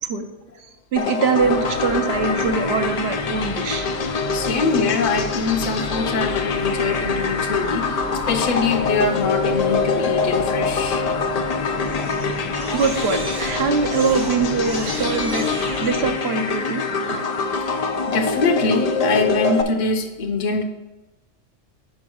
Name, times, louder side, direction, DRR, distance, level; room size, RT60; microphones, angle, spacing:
voice 1, 0.9-4.0 12.7-15.5 15.8-17.2, right 5 dB, 60° right, 6 dB, 0.9 m, -23 dB
sound 1, 1.0-19.6, left 4 dB, 65° left, 0.4 m, -25 dB
sound 2, 1.4-16.2, left 5 dB, 80° left, 1.0 m, -33 dB
voice 2, 4.3-8.0 8.3-12.3 18.1-20.6, left 4 dB, 45° left, 4 dB, 0.8 m, -24 dB
Crying sobbing, 5.5-6.4 11.1-11.4 11.8-15.9, right 3 dB, 35° right, 0.4 m, -36 dB
5.3 x 5.0 x 6.2 m, 1.0 s
omnidirectional pair, 1.3 m